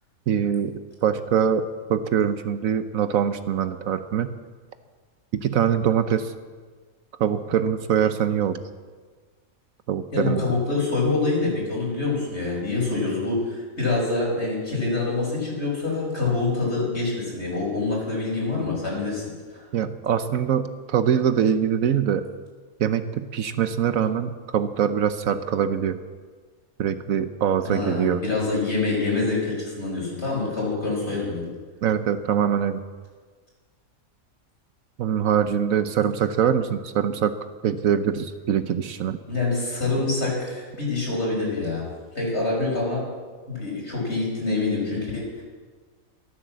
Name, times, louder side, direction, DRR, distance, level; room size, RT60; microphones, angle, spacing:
voice 1, 0.3-4.3 5.3-6.3 7.2-8.6 9.9-10.4 19.7-22.3 22.8-26.0 26.8-28.2 31.8-32.8 35.0-37.3 37.6-39.2, right 8 dB, 70° right, 11 dB, 1.2 m, -23 dB
voice 2, 10.1-19.2 19.5-19.6 27.6-31.5 39.3-41.9 42.1-43.0 43.5-45.4, left 3 dB, 50° left, -3 dB, 5.9 m, -26 dB
13.5 x 13.0 x 7.5 m, 1.5 s
omnidirectional pair, 1.5 m